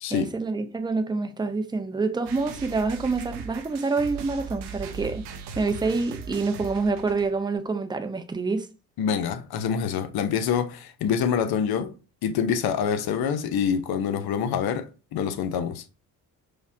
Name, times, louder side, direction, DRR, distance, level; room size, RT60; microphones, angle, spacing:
voice 1, 0.1-5.2 5.6-8.7, right 3 dB, 10° right, 0.5 m, -27 dB
sound 1, 2.3-7.6, right 6 dB, 80° right, 0.7 m, -39 dB
voice 2, 9.0-11.9 12.2-15.8, left 7 dB, 65° left, 0.7 m, -26 dB
4.9 x 2.1 x 2.6 m
cardioid pair, 85°, 39 cm